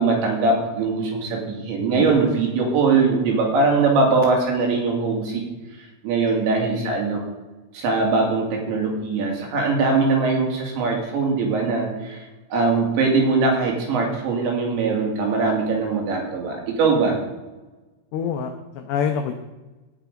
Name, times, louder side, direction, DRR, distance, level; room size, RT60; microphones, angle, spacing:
voice 1, 0.0-5.4 6.0-7.2 7.7-12.2 12.5-17.2, right 4 dB, 65° right, 0 dB, 4.3 m, -21 dB
voice 2, 1.9-2.3 6.8-7.0 18.1-19.4, left 7 dB, 85° left, 5 dB, 2.4 m, -27 dB
17.5 x 6.1 x 5.2 m, 1.1 s
omnidirectional pair, 5.9 m